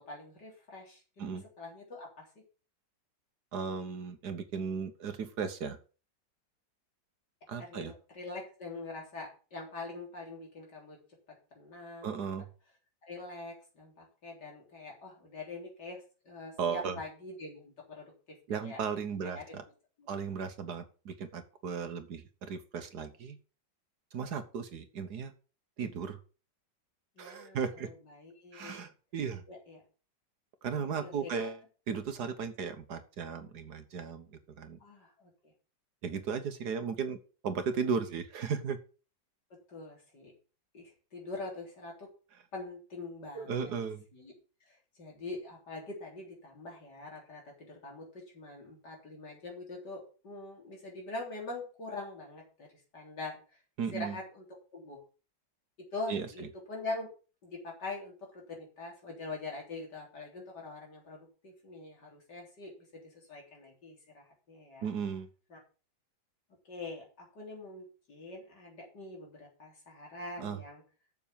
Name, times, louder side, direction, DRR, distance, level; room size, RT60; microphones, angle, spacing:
voice 1, 0.0-1.0 1.6-2.4 7.6-11.0 11.3-12.1 13.0-18.8 19.2-19.4 20.1-20.3 27.2-28.7 29.5-29.8 31.0-31.5 34.8-35.5 39.5-40.3 40.7-42.1 42.5-43.7 44.1-44.3 44.6-52.7 52.9-53.6 53.9-54.5 54.7-55.0 55.8-57.1 57.4-64.9 65.5-65.6 66.7-70.8, left 2 dB, 65° left, -1 dB, 4.2 m, -44 dB
voice 2, 3.5-5.8 7.5-7.9 12.0-12.5 16.6-17.0 18.5-19.6 20.1-23.4 24.1-25.3 25.8-26.2 27.2-27.9 28.5-29.4 30.6-31.6 31.9-34.8 36.0-37.2 37.4-38.8 43.3-44.0 53.8-54.2 56.1-56.5 64.8-65.3 70.4-70.6, right 6 dB, 65° right, 9 dB, 1.5 m, -36 dB
7.3 x 7.0 x 6.9 m, 0.36 s
omnidirectional pair, 1.9 m